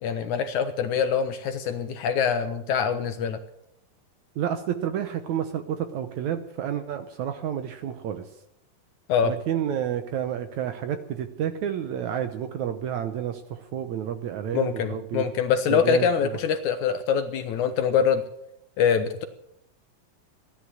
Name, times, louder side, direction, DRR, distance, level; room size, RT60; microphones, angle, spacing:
voice 1, 0.0-3.4 9.1-9.3 14.5-18.2 18.8-19.2, left 7 dB, 70° left, 8 dB, 2.0 m, -24 dB
voice 2, 4.4-8.2 9.2-15.2 15.7-16.4, right 9 dB, 70° right, 8 dB, 1.9 m, -30 dB
16.0 x 11.5 x 7.6 m, 0.78 s
omnidirectional pair, 4.1 m